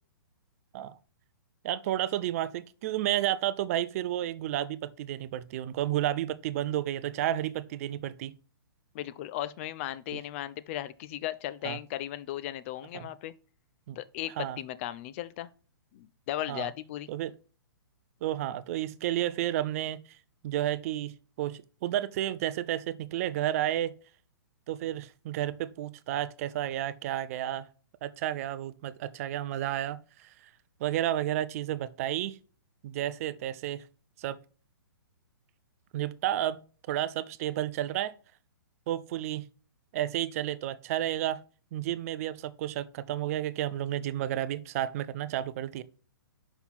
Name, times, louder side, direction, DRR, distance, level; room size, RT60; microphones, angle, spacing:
voice 1, 1.6-8.3 11.6-11.8 12.9-13.1 13.9-14.0 14.4-14.6 16.5-16.7 17.1-17.3 18.2-20.0 20.4-23.9 24.7-27.7 28.0-30.3 30.8-32.4 32.8-33.8 34.2-34.4 35.9-36.6 36.9-38.1 38.9-39.5 39.9-41.4 41.7-45.8, right 12 dB, 40° right, 0.4 m, -31 dB
voice 2, 8.9-13.3 14.0-15.5 15.9-17.1, left 13 dB, 35° left, 0.4 m, -36 dB
5.6 x 4.3 x 4.1 m
hypercardioid pair, 145°, 12 cm